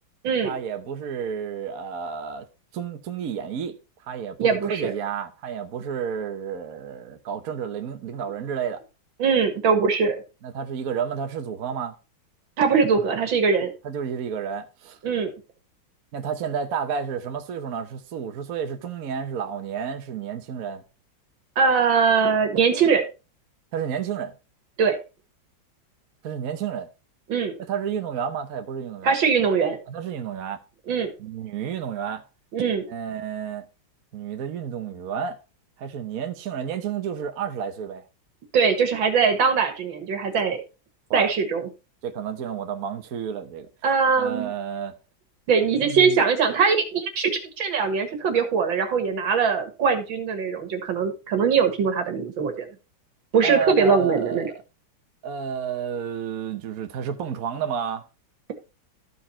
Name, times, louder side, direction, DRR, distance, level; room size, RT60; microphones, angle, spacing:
voice 1, 0.4-2.5 2.7-3.7 4.0-8.8 10.4-11.9 13.8-15.0 16.1-20.8 23.7-24.4 26.2-26.9 27.6-29.2 29.9-30.6 31.2-32.2 32.9-33.7 34.1-35.4 35.8-38.0 41.1-41.3 42.0-43.7 44.2-45.0 45.8-46.2 53.4-54.6 55.2-58.0, right 7 dB, 55° right, 1.2 m, -31 dB
voice 2, 4.4-4.9 9.2-10.2 12.6-13.7 15.0-15.3 21.6-23.0 24.8-25.0 27.3-27.6 29.0-29.8 30.9-31.1 32.5-32.8 38.5-40.6 41.1-41.7 43.8-44.5 45.5-52.7 53.3-54.5, right 5 dB, 85° right, 2.4 m, -21 dB
14.0 x 4.7 x 4.2 m
omnidirectional pair, 2.1 m